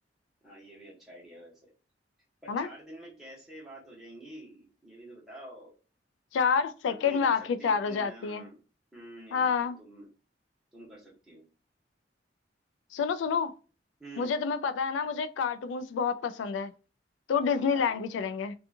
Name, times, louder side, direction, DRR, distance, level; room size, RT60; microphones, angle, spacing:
voice 1, 0.4-1.5 2.4-5.7 6.8-8.6 8.9-10.1 10.7-11.4 14.0-14.3 17.5-18.0, right 1 dB, ahead, 1.2 m, -48 dB
voice 2, 6.3-8.4 9.3-9.8 12.9-13.5 14.2-16.7 17.3-18.5, left 6 dB, 90° left, 0.3 m, -28 dB
2.6 x 2.4 x 2.5 m
head